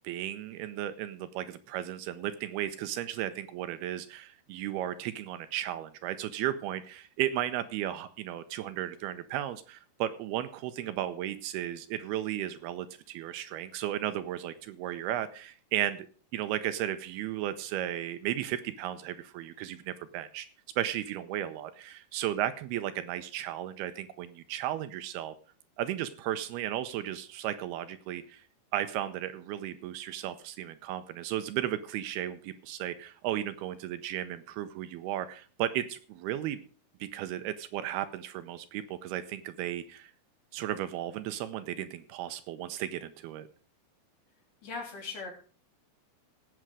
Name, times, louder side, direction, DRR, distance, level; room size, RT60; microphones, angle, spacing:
voice 1, 0.0-16.1 16.3-20.5 20.8-25.3 25.8-28.4 28.7-36.6 37.0-40.1 40.5-43.5, right 12 dB, 80° right, 11 dB, 2.5 m, -34 dB
voice 2, 44.6-45.3, left 4 dB, 50° left, 0 dB, 4.5 m, -38 dB
17.0 x 7.7 x 4.8 m, 0.40 s
omnidirectional pair, 4.7 m